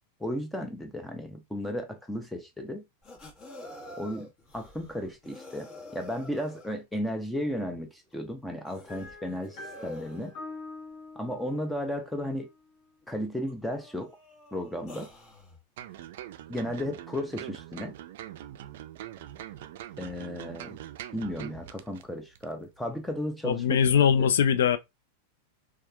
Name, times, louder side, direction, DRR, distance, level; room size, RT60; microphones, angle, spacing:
voice 1, 0.2-2.8 4.0-4.3 4.5-9.6 9.8-10.3 11.2-12.5 13.1-14.1 14.5-15.1 16.5-17.9 20.0-20.8 21.1-23.8 24.2-24.3, equal, 5° left, 0.4 m, -34 dB
sound 1, 3.0-6.8 7.5-7.6 8.1-8.2 8.6-10.3 12.3-12.4 13.0-13.2 13.5-15.6 18.7-18.8 19.2-19.5 20.6-20.7, left 1 dB, 35° left, 1.2 m, -47 dB
sound 2, 8.9-12.7, left 3 dB, 50° left, 0.9 m, -45 dB
sound 3, 15.8-22.0 22.3-22.5, right 12 dB, 70° right, 0.3 m, -43 dB
voice 2, 23.4-24.8, left 8 dB, 85° left, 0.3 m, -22 dB
2.8 x 2.3 x 2.2 m
hypercardioid pair, 120°, 0 cm